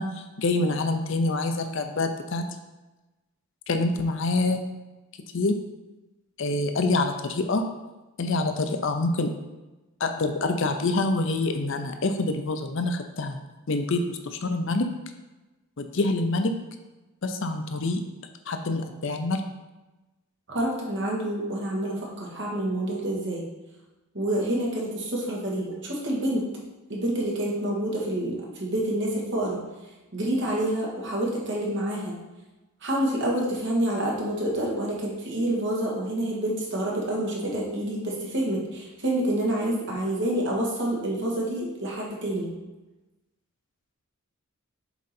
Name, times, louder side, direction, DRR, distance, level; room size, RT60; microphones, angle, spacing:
voice 1, 0.0-2.4 3.7-4.6 5.3-5.5 6.4-7.6 8.2-9.3 10.0-13.4 13.7-14.9 15.8-16.5 17.2-18.0 18.5-19.4, left 2 dB, 60° left, 6 dB, 0.6 m, -26 dB
voice 2, 20.5-23.4 24.1-26.4 26.9-29.6 30.1-32.1 32.8-42.5, right 1 dB, 55° right, -3 dB, 1.7 m, -28 dB
7.2 x 3.8 x 4.3 m, 1.1 s
head